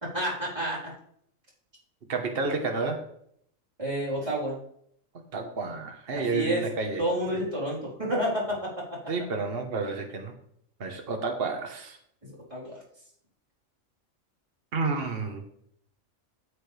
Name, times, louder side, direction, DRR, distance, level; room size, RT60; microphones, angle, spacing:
voice 1, 0.1-0.9 3.8-4.6 6.1-6.6 7.0-8.7 12.5-12.8, equal, 25° right, -7 dB, 4.3 m, -29 dB
voice 2, 2.1-3.0 5.1-7.0 9.1-10.3 10.8-12.0 14.7-15.4, right 4 dB, 45° right, 3 dB, 1.5 m, -30 dB
13.0 x 8.4 x 3.4 m, 0.68 s
omnidirectional pair, 1.4 m